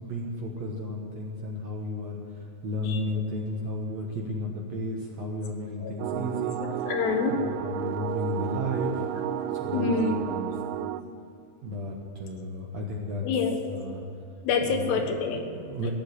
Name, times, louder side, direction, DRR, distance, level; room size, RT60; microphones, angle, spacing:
voice 1, 0.0-2.2 2.6-6.6 7.3-8.9 9.5-10.5 11.6-13.2 13.7-14.0 14.7-15.0 15.5-15.9, left 1 dB, 60° right, -1 dB, 1.9 m, -33 dB
sound 1, 6.0-11.0, right 12 dB, 80° right, 2.3 m, -32 dB
voice 2, 6.6-7.4 9.7-10.2 13.2-13.6 14.4-15.4 15.8-15.9, left 5 dB, 85° left, 5 dB, 3.4 m, -27 dB
17.0 x 7.6 x 9.8 m, 2.8 s
omnidirectional pair, 4.7 m